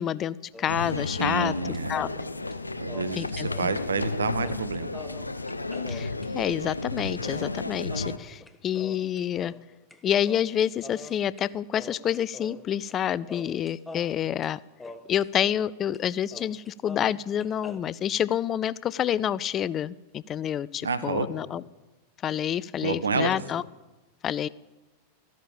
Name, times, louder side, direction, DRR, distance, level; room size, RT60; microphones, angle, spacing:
voice 1, 0.0-1.5 1.9-2.1 3.1-3.7 5.9-9.5 10.0-14.6 15.1-21.6 22.2-23.6 24.2-24.5, left 10 dB, 30° left, 20 dB, 0.4 m, -28 dB
sound 1, 0.5-1.1 1.4-3.8 4.0-4.1 4.4-10.0 10.3-11.5 11.7-13.0 13.3-15.7 15.9-16.0 16.3-17.8, left 2 dB, 10° left, 1.3 m, -44 dB
sound 2, 0.7-8.2, left 2 dB, 80° left, 0.8 m, -33 dB
voice 2, 1.2-2.0 2.8-4.9 20.8-21.3 22.8-23.3, right 4 dB, 75° right, 13 dB, 1.3 m, -29 dB
14.0 x 11.5 x 7.2 m, 1.1 s
figure-of-eight pair, 90°, 0 cm